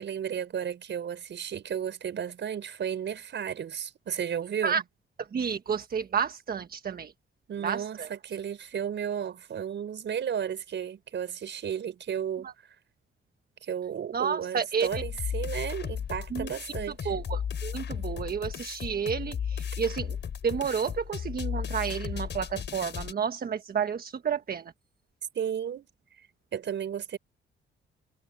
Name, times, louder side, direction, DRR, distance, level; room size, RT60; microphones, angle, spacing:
voice 1, 0.0-4.8 7.5-12.5 13.6-17.1 25.3-25.9 26.5-27.2, right 8 dB, 65° right, 5.8 m, -33 dB
voice 2, 5.2-7.1 7.6-8.1 12.4-12.5 14.1-14.9 16.3-16.7 17.0-20.2 20.4-24.7, right 7 dB, 50° right, 1.4 m, -31 dB
sound 1, 14.8-23.1, left 8 dB, 60° left, 5.6 m, -35 dB
cardioid pair, 95°, 20 cm